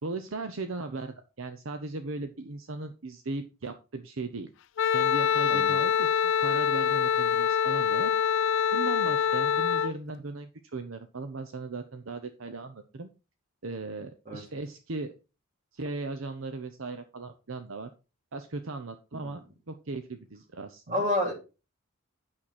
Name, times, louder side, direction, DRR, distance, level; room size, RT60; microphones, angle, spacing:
voice 1, 0.0-4.5 4.9-8.1 8.7-13.1 13.6-15.1 15.7-17.9 18.3-19.4 19.7-21.1, right 3 dB, 65° right, 8 dB, 0.8 m, -37 dB
Wind instrument woodwind instrument, 4.8-9.9, left 8 dB, 60° left, 0.4 m, -25 dB
voice 2, 20.9-21.3, left 1 dB, 35° right, 1 dB, 3.3 m, -29 dB
8.7 x 6.5 x 4.3 m, 0.31 s
head